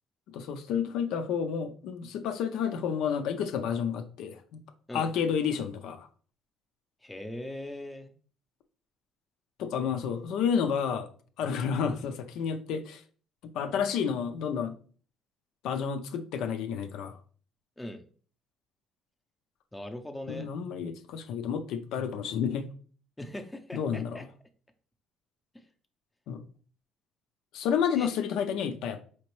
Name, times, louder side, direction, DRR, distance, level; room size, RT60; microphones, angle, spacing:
voice 1, 0.3-4.6 4.9-6.1 9.6-11.1 11.4-13.0 13.4-14.8 15.6-17.2 20.3-22.7 23.7-24.3 26.3-26.4 27.5-29.0, left 7 dB, 75° left, 0.5 m, -30 dB
voice 2, 7.0-8.1 17.8-18.0 19.7-20.5 23.2-24.3 28.0-28.1, left 1 dB, 10° left, 0.6 m, -40 dB
4.2 x 2.9 x 3.1 m
cardioid pair, 110°, 0 cm